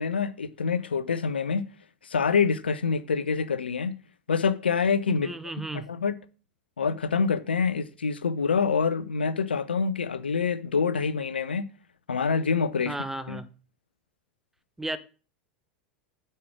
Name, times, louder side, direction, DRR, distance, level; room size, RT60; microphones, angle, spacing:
voice 1, 0.0-1.6 2.0-3.9 4.3-5.3 5.7-6.1 6.8-11.7 12.1-12.9 13.3-13.4, left 5 dB, 75° left, 0.6 m, -26 dB
voice 2, 5.2-5.9 12.9-13.5 14.8-15.0, right 2 dB, 5° right, 0.8 m, -34 dB
8.4 x 5.6 x 4.8 m
figure-of-eight pair, 85°, 6 cm